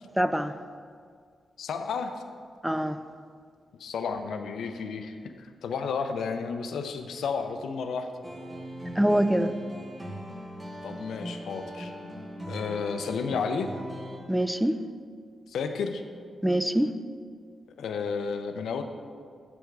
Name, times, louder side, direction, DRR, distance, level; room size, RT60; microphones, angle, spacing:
voice 1, 0.2-0.5 2.6-3.0 9.0-9.5 14.3-14.8 16.4-16.9, right 1 dB, 5° right, 11 dB, 0.4 m, -24 dB
voice 2, 1.6-2.1 3.8-8.1 10.8-11.9 12.5-13.7 15.5-16.0 17.8-18.8, left 5 dB, 85° left, 7 dB, 0.5 m, -32 dB
sound 1, 8.2-14.2, equal, 20° right, 1.1 m, -40 dB
7.9 x 3.5 x 6.6 m, 2.1 s
cardioid pair, 65°, 0 cm